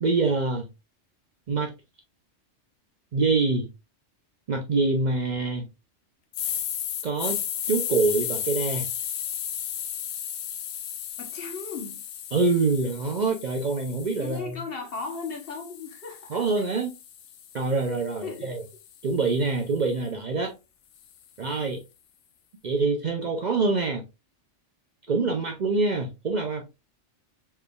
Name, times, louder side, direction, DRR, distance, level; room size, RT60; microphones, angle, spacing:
voice 1, 0.0-0.7 1.5-1.7 3.1-3.7 4.5-5.7 7.0-7.4 7.7-8.9 12.3-14.6 16.3-16.9 17.5-18.6 19.0-20.5 21.4-21.8 22.6-24.0 25.1-26.7, right 3 dB, 50° right, 0.6 m, -25 dB
sound 1, 6.3-14.4 14.9-19.1, left 9 dB, 85° left, 0.9 m, -34 dB
voice 2, 11.2-12.0 14.2-16.6 18.2-18.6 25.1-25.4, left 4 dB, 55° left, 1.3 m, -37 dB
4.6 x 3.2 x 2.2 m
omnidirectional pair, 1.2 m